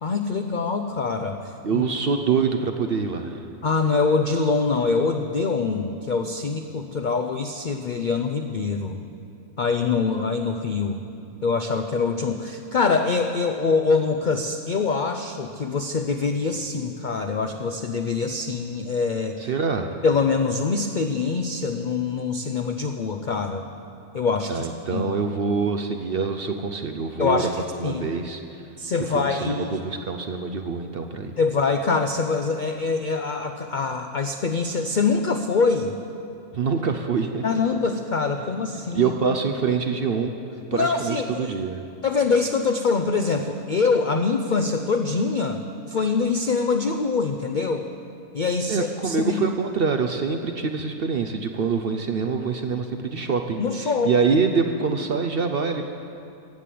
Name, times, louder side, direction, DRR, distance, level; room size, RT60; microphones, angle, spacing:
voice 1, 0.0-1.8 3.6-9.0 9.6-11.0 11.4-19.4 20.0-23.7 24.1-25.1 27.2-27.5 27.8-28.0 28.8-29.7 31.4-35.9 37.4-39.1 40.7-41.5 42.0-45.6 45.9-47.9 48.3-49.4 53.6-54.2, left 4 dB, 65° left, 6 dB, 0.4 m, -24 dB
voice 2, 1.6-3.5 19.4-19.9 24.5-27.5 27.8-28.6 29.0-31.3 36.5-37.4 38.9-40.3 40.7-41.8 48.7-55.9, right 5 dB, 55° right, 5 dB, 0.7 m, -25 dB
14.5 x 7.6 x 8.5 m, 2.6 s
omnidirectional pair, 1.5 m